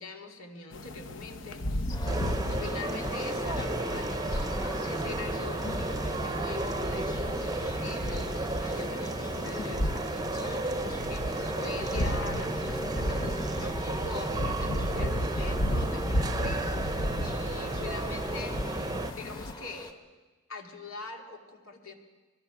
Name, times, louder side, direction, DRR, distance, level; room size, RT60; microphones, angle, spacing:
voice 1, 0.0-1.9 2.5-18.6 19.1-19.9 20.5-21.9, left 3 dB, 80° left, 3 dB, 2.5 m, -43 dB
sound 1, 0.7-19.5, equal, 60° left, 1.0 m, -35 dB
sound 2, 1.9-19.9, left 1 dB, 20° left, 1.3 m, -42 dB
sound 3, 2.1-19.1, right 2 dB, 20° right, 0.7 m, -33 dB
25.0 x 21.0 x 6.0 m, 1.3 s
head